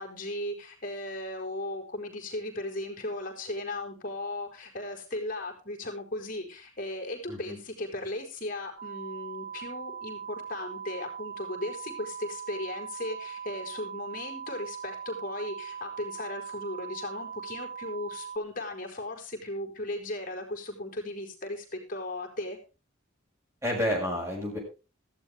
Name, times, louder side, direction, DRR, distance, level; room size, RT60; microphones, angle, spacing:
voice 1, 0.0-22.6, left 1 dB, 40° left, 3 dB, 4.8 m, -36 dB
voice 2, 7.3-7.6 23.6-24.6, equal, 15° right, -1 dB, 6.3 m, -30 dB
sound 1, 8.8-18.4, right 7 dB, 40° right, 1.4 m, -40 dB
15.5 x 13.0 x 3.6 m, 0.32 s
head